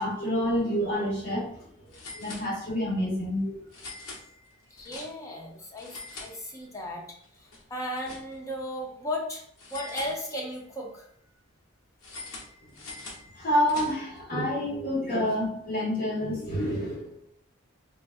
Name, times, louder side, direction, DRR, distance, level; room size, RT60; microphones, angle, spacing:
voice 1, 0.0-1.7 2.1-3.5 13.3-17.2, equal, 45° left, -7 dB, 1.4 m, -28 dB
sound 1, 0.8-0.9 1.2-1.3 1.9-3.0 3.7-5.4 5.7-6.9 7.2-8.6 9.6-10.7 12.0-14.2, left 3 dB, 80° left, 0.7 m, -44 dB
voice 2, 4.7-7.1 7.3-9.4 9.7-11.1, left 1 dB, 15° left, -1 dB, 0.5 m, -35 dB
3.7 x 2.4 x 2.4 m, 0.68 s
head